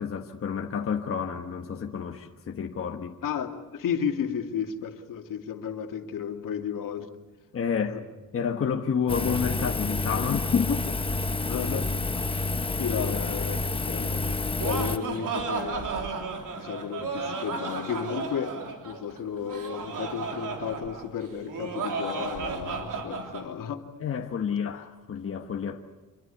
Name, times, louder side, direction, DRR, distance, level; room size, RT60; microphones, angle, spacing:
voice 1, 0.0-3.2 7.5-8.0 8.3-10.9 13.1-13.2 24.0-25.8, left 7 dB, 40° left, 1.3 m, -29 dB
voice 2, 3.2-7.1 7.9-8.0 11.5-11.9 12.1-12.5 12.8-16.2 16.6-18.6 18.8-23.8 24.5-24.6, left 8 dB, 75° left, 2.4 m, -33 dB
Engine, 9.1-15.0, left 3 dB, 15° left, 0.9 m, -29 dB
Laughter, 14.3-23.4, right 4 dB, 70° right, 3.6 m, -33 dB
26.5 x 23.0 x 8.2 m
wide cardioid pair, 165°, 33 cm